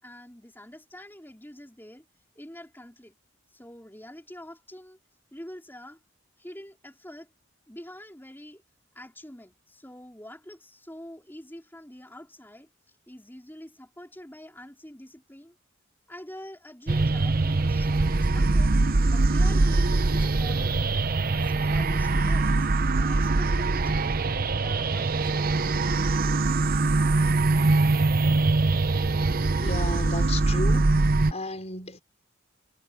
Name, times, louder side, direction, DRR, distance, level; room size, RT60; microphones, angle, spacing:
voice 1, 0.0-2.0 2.3-3.1 3.5-5.0 5.3-6.0 6.4-7.3 7.7-8.6 8.9-15.6 16.1-18.8 19.1-20.7 21.3-25.5, left 1 dB, 10° left, 4.4 m, -45 dB
sound 1, 16.9-31.3, right 3 dB, 45° right, 0.7 m, -23 dB
voice 2, 29.6-31.0 31.3-32.0, left 2 dB, 35° left, 5.4 m, -34 dB
head